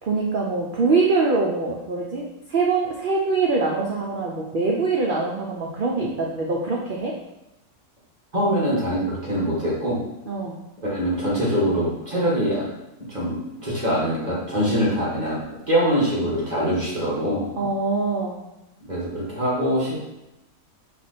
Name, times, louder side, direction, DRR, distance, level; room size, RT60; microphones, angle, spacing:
voice 1, 0.0-2.2 2.5-7.1 10.3-10.6 17.6-18.4, right 3 dB, 80° right, -2 dB, 0.4 m, -23 dB
voice 2, 8.3-10.0 10.8-12.6 13.1-17.4 18.9-20.0, equal, 30° right, -6 dB, 1.6 m, -23 dB
4.4 x 2.4 x 4.1 m, 0.92 s
omnidirectional pair, 1.6 m